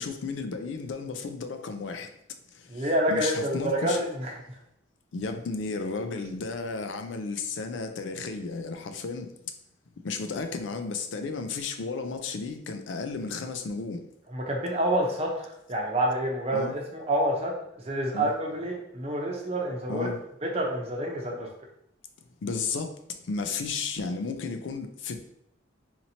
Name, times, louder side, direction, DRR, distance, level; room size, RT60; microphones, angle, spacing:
voice 1, 0.0-2.1 2.5-4.0 5.1-9.3 10.0-14.1 16.5-16.8 18.1-18.3 19.9-20.2 22.4-25.3, left 4 dB, 70° left, 0.4 m, -33 dB
voice 2, 2.7-4.4 14.3-15.3 15.7-17.5 17.8-20.1 20.4-21.5, right 1 dB, 35° right, 0.7 m, -28 dB
4.3 x 2.8 x 2.8 m
head